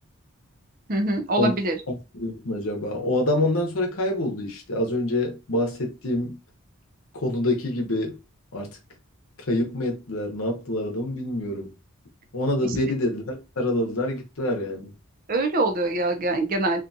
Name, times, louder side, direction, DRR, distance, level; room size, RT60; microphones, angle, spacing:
voice 1, 0.9-1.8 12.6-12.8 15.3-16.8, right 2 dB, 40° right, 0.5 m, -24 dB
voice 2, 1.9-6.4 7.1-8.2 8.5-8.8 9.5-11.7 12.3-14.9, left 1 dB, 65° left, 0.8 m, -26 dB
2.5 x 2.3 x 2.6 m
head